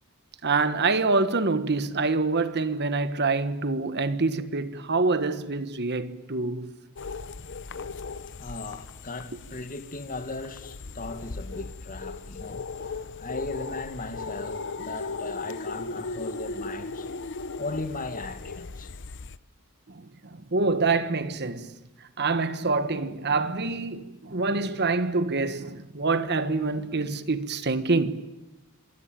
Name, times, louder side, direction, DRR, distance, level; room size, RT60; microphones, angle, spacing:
voice 1, 0.4-6.7 19.9-21.7 22.2-28.2, right 3 dB, 50° right, 1.4 m, -26 dB
sound 1, 7.0-19.4, left 4 dB, 55° left, 0.9 m, -37 dB
voice 2, 8.4-17.1 17.6-18.9, left 2 dB, 40° left, 2.0 m, -37 dB
26.0 x 23.0 x 9.1 m
head